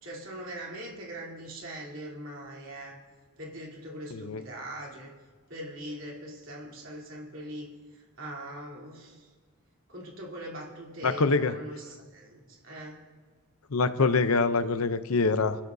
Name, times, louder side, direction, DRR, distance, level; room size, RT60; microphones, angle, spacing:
voice 1, 0.0-2.9 3.4-5.1 5.5-9.3 9.9-13.0, right 1 dB, 60° right, -2 dB, 3.4 m, -41 dB
voice 2, 4.1-4.4 11.0-11.6 13.7-15.6, left 4 dB, 85° left, 11 dB, 0.7 m, -25 dB
28.5 x 12.0 x 2.7 m, 1.5 s
head